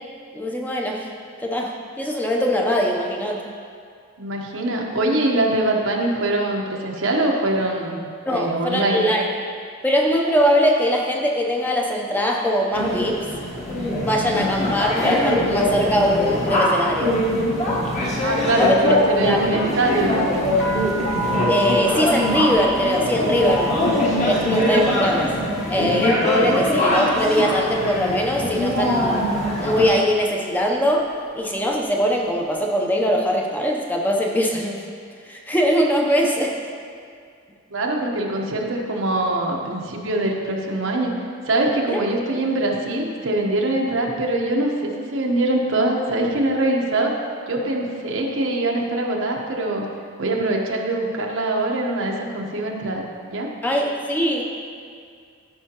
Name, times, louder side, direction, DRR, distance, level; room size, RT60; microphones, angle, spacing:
voice 1, 0.3-1.0 1.4-3.4 8.3-9.3 9.8-13.2 14.0-17.2 18.5-18.7 19.2-19.6 21.5-23.7 24.2-25.3 25.7-29.2 29.6-31.1 31.3-34.8 35.3-36.6 41.9-42.0 53.6-54.4, equal, 10° left, 0 dB, 0.7 m, -21 dB
voice 2, 4.2-9.1 14.2-14.6 18.2-20.3 37.7-41.1 41.4-47.1 47.5-49.9 50.2-53.5, right 2 dB, 85° right, 0 dB, 1.0 m, -23 dB
sound 1, 12.7-29.9, left 1 dB, 35° left, 1.3 m, -22 dB
sound 2, 20.6-28.5 28.7-29.4 30.0-30.3 30.6-32.0, equal, 75° left, 0.9 m, -33 dB
13.5 x 5.6 x 3.0 m, 2.2 s
head